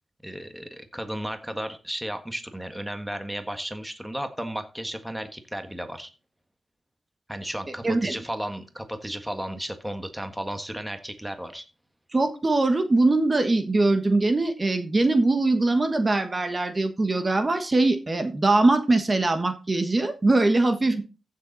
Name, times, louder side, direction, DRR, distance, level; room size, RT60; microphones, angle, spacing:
voice 1, 0.2-6.1 7.3-11.6, equal, 5° right, 8 dB, 1.5 m, -34 dB
voice 2, 7.8-8.1 12.1-21.0, right 2 dB, 25° right, 8 dB, 1.4 m, -22 dB
15.0 x 6.9 x 4.1 m, 0.32 s
wide cardioid pair, 110°, 0 cm